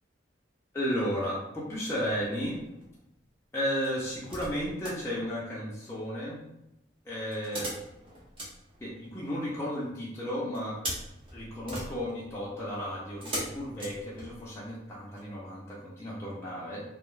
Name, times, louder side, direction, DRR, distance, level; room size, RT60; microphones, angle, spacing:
voice 1, 0.7-2.6 3.5-6.5 7.1-7.7 8.8-10.8 11.3-16.8, equal, 15° left, -7 dB, 0.5 m, -34 dB
sound 1, 2.4-3.0 3.8-5.0 7.3-9.5 10.5-14.7 15.2-15.3, equal, 30° right, 0.6 m, -40 dB
2.4 x 2.2 x 3.0 m, 0.87 s
head